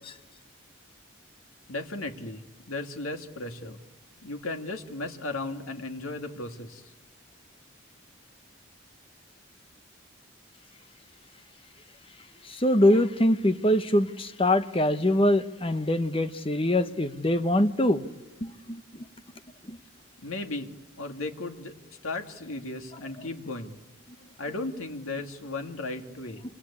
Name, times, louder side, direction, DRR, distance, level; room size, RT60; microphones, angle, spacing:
voice 1, 1.7-3.8 4.2-6.9 20.2-21.7 22.0-23.8 24.4-26.4, left 2 dB, 85° left, 2.3 m, -36 dB
voice 2, 12.6-18.0 18.7-18.8 19.7-19.8, left 1 dB, 25° left, 1.0 m, -23 dB
27.0 x 25.5 x 8.6 m
head